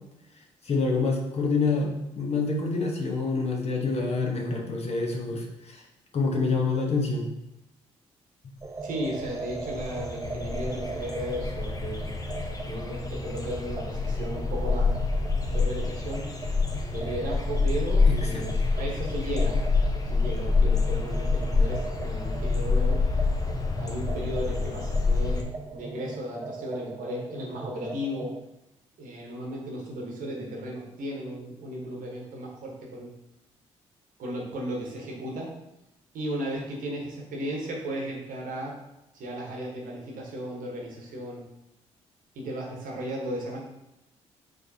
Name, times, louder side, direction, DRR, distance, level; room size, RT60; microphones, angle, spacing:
voice 1, 0.6-5.8 6.1-7.3 18.1-18.5, left 3 dB, 40° left, 0 dB, 1.0 m, -27 dB
sound 1, 8.6-8.7 8.9-25.4, left 4 dB, 25° left, 0.7 m, -27 dB
sound 2, 8.6-28.4, right 3 dB, 20° right, 0.4 m, -40 dB
voice 2, 8.8-12.1 12.7-14.9 15.5-16.3 16.9-19.6 20.0-23.1 23.8-25.5 25.7-28.3 29.0-33.1 34.2-35.5 36.1-38.8 39.1-41.4 42.3-43.6, right 1 dB, 60° right, -2 dB, 1.2 m, -35 dB
4.9 x 3.3 x 2.7 m, 0.90 s
hypercardioid pair, 45°, 16 cm